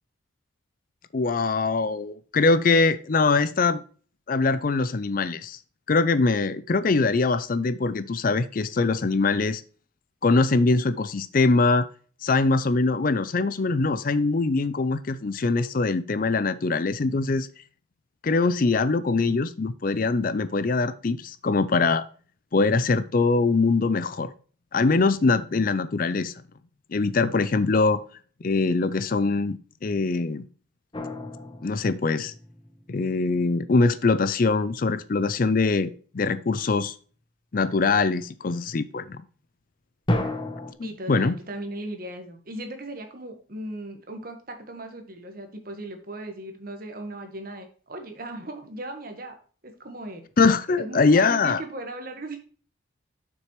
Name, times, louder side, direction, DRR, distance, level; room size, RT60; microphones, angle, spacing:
voice 1, 1.1-3.8 4.3-5.6 5.9-9.6 10.2-11.9 12.2-17.5 18.2-22.0 22.5-24.3 24.7-26.3 26.9-28.0 28.4-30.4 31.6-32.3 32.9-36.9 37.5-39.2 40.8-41.4 50.4-51.6, left 3 dB, 45° left, 0.5 m, -23 dB
sound 1, 30.9-33.0 40.1-40.7, left 1 dB, 25° left, 0.9 m, -31 dB
voice 2, 40.8-49.4 49.6-50.2 50.8-52.4, right 1 dB, 45° right, 1.5 m, -37 dB
7.5 x 6.1 x 3.2 m
head